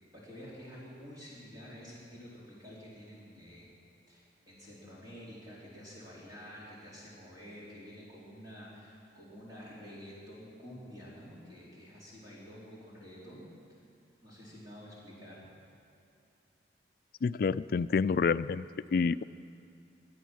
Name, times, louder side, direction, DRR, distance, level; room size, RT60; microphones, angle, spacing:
voice 1, 0.1-3.7 4.1-13.5 14.2-15.5 19.0-19.1, equal, 20° right, -8 dB, 4.1 m, -49 dB
voice 2, 17.2-18.7 18.9-19.2, left 5 dB, 55° left, 16 dB, 0.3 m, -28 dB
24.5 x 9.2 x 6.2 m, 2.6 s
head